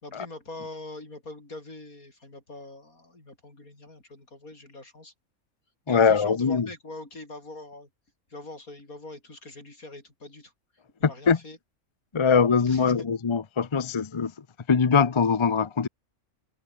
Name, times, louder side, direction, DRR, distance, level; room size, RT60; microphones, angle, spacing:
voice 1, 0.0-5.1 5.9-7.9 8.3-10.5 11.0-11.6 12.7-13.1, left 2 dB, 85° left, 6.6 m, -43 dB
voice 2, 5.9-6.7 11.3-11.4 12.1-14.3 14.7-15.9, left 5 dB, 35° left, 0.5 m, -22 dB
omnidirectional pair, 1.5 m